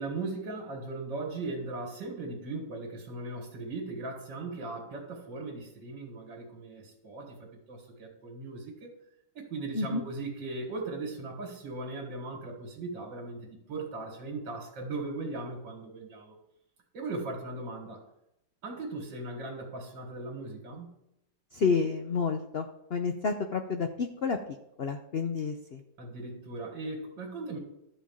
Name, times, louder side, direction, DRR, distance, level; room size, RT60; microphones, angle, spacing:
voice 1, 0.0-8.9 9.3-16.3 16.9-18.0 18.6-20.9 26.0-27.6, right 3 dB, 75° right, -1 dB, 2.6 m, -38 dB
voice 2, 21.5-25.8, left 5 dB, 85° left, 6 dB, 0.5 m, -30 dB
12.5 x 4.4 x 7.2 m, 0.82 s
omnidirectional pair, 2.0 m